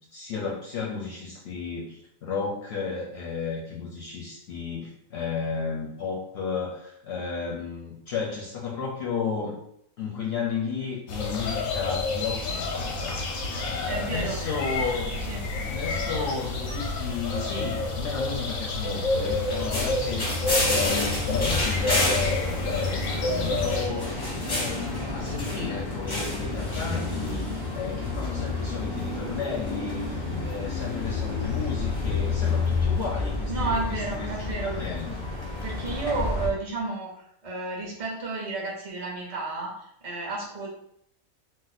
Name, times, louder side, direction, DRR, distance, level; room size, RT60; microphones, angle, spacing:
voice 1, 0.1-9.6 10.0-15.2 15.7-35.2, left 5 dB, 65° left, -2 dB, 0.7 m, -33 dB
sound 1, 11.1-23.9, left 3 dB, 90° left, 1.1 m, -29 dB
voice 2, 13.9-14.4 15.2-15.4 33.5-34.8 35.6-40.7, right 3 dB, 40° right, -2 dB, 0.5 m, -32 dB
sound 2, 14.6-19.7 20.0-20.2, right 3 dB, 60° right, 0.8 m, -44 dB
sound 3, 19.1-36.5, left 3 dB, 30° left, 0.6 m, -29 dB
2.6 x 2.0 x 4.0 m, 0.72 s
omnidirectional pair, 1.4 m